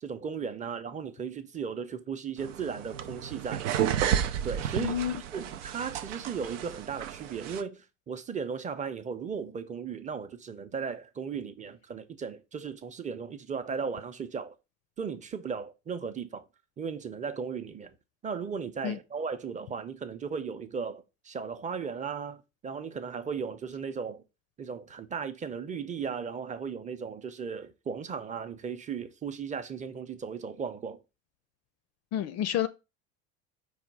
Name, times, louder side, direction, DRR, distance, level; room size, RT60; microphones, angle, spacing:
voice 1, 0.0-3.7 4.4-4.9 5.3-14.5 15.0-16.4 16.8-17.9 18.2-24.2 24.6-31.0, right 6 dB, 20° right, 0.6 m, -36 dB
sound 1, 2.4-7.6, right 9 dB, 85° right, 0.5 m, -32 dB
voice 2, 4.7-5.2 18.8-19.0 32.1-32.7, left 10 dB, 45° left, 0.4 m, -29 dB
5.0 x 2.3 x 4.6 m
hypercardioid pair, 90°, 36 cm